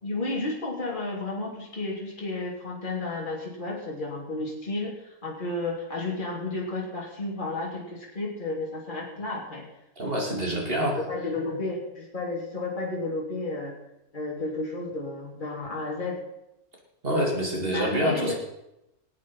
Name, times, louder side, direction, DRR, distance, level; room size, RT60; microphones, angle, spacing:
voice 1, 0.0-9.7 10.5-13.8 14.1-16.2 17.6-18.3, left 2 dB, 30° left, -4 dB, 3.3 m, -32 dB
voice 2, 10.0-11.0 17.0-18.3, equal, 35° right, -1 dB, 3.3 m, -26 dB
21.0 x 8.7 x 5.6 m, 0.88 s
omnidirectional pair, 1.7 m